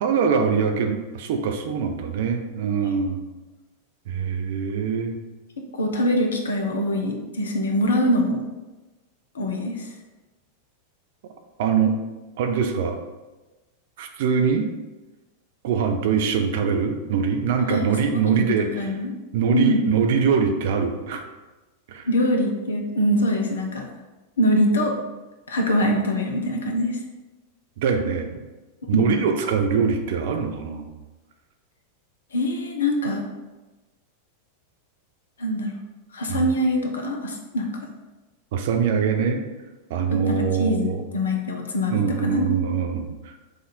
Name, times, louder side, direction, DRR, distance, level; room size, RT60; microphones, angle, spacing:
voice 1, 0.0-3.3 4.1-5.2 11.6-12.0 12.4-13.0 14.0-14.7 15.6-19.0 19.3-21.2 21.9-22.1 27.8-28.3 28.9-30.9 36.3-36.5 38.5-39.4 39.9-41.0 41.9-43.4, right 6 dB, 55° right, 6 dB, 0.5 m, -23 dB
voice 2, 5.7-8.4 9.3-9.9 17.7-17.9 18.3-19.1 19.5-19.9 22.1-23.8 24.4-24.9 25.5-27.0 28.9-29.1 32.3-33.2 35.4-35.7 36.1-37.8 40.1-42.5, equal, 65° left, 2 dB, 0.7 m, -23 dB
5.0 x 2.5 x 4.2 m, 1.1 s
figure-of-eight pair, 90°, 0 cm